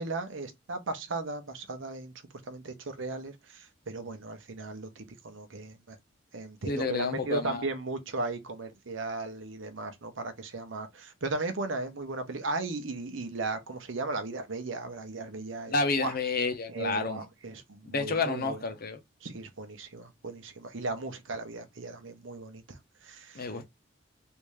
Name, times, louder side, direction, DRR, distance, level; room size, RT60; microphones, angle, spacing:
voice 1, 0.0-2.1 2.5-6.0 6.3-16.1 16.7-18.6 19.2-22.6 23.0-23.5, right 3 dB, 80° right, 0.8 m, -36 dB
voice 2, 6.7-7.6 15.7-17.2 17.9-19.0 23.3-23.6, left 3 dB, 50° left, 0.8 m, -30 dB
3.4 x 2.7 x 3.2 m
head